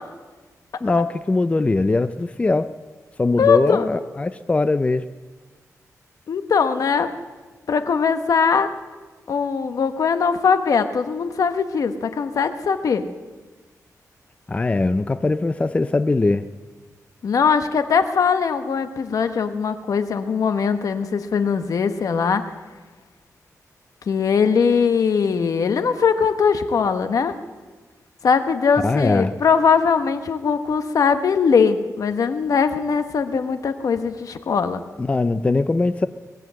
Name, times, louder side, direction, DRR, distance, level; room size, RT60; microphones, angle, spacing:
voice 1, 0.8-2.7 3.2-5.1 14.5-16.4 28.8-29.3 35.0-36.1, left 3 dB, 20° left, 11 dB, 0.4 m, -21 dB
voice 2, 3.4-3.9 6.3-7.1 7.7-8.7 9.3-13.0 17.2-22.5 24.1-27.3 28.2-34.8, left 6 dB, 70° left, 9 dB, 1.0 m, -20 dB
20.0 x 7.8 x 7.7 m, 1.3 s
wide cardioid pair, 115°, 6 cm